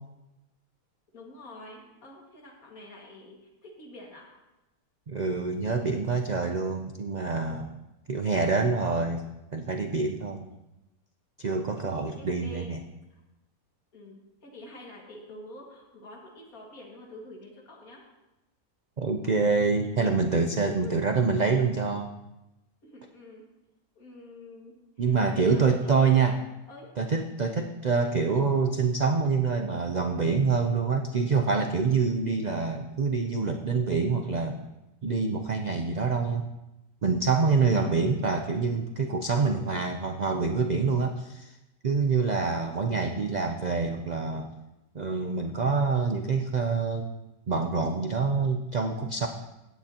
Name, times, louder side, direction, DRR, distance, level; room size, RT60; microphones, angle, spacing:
voice 1, 1.1-4.3 12.2-12.7 13.1-13.2 13.9-18.0 20.6-21.0 22.8-23.4 24.0-26.2 26.7-26.9 37.7-37.9 42.8-43.3, left 1 dB, 70° left, -1 dB, 2.5 m, -47 dB
voice 2, 5.1-7.8 8.1-9.2 9.5-10.5 11.4-12.8 19.0-22.1 25.0-26.4 27.0-34.6 35.0-36.5 37.0-41.5 41.8-44.5 44.9-47.1 47.5-49.3, right 4 dB, 70° right, 5 dB, 0.4 m, -26 dB
16.0 x 9.2 x 2.9 m, 0.97 s
omnidirectional pair, 1.6 m